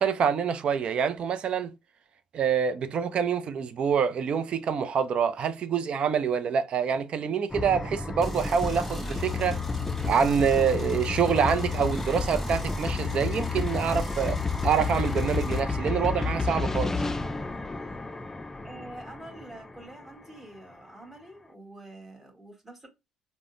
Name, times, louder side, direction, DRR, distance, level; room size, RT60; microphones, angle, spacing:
voice 1, 0.0-1.7 2.3-9.6 10.1-14.4 14.6-16.9, right 7 dB, 50° right, 0.4 m, -26 dB
sound 1, 7.5-20.3, left 3 dB, 20° left, 0.4 m, -32 dB
sound 2, 8.2-15.6, left 6 dB, 5° left, 1.4 m, -35 dB
voice 2, 18.6-22.9, right 1 dB, 15° right, 1.4 m, -46 dB
3.5 x 2.1 x 2.5 m
hypercardioid pair, 55°, 2 cm